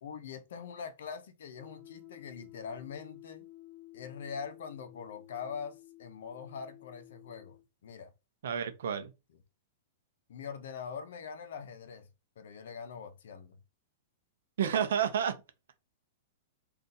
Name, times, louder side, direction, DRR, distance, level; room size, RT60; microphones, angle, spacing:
voice 1, 0.0-3.5 3.9-8.1 10.3-12.1 12.4-13.6, left 6 dB, 65° left, 0.6 m, -43 dB
sound 1, 1.6-7.6, left 17 dB, 5° left, 0.3 m, -53 dB
voice 2, 8.4-9.1 14.6-15.4, right 8 dB, 70° right, 0.6 m, -30 dB
2.7 x 2.4 x 3.8 m
supercardioid pair, 180°, 0 cm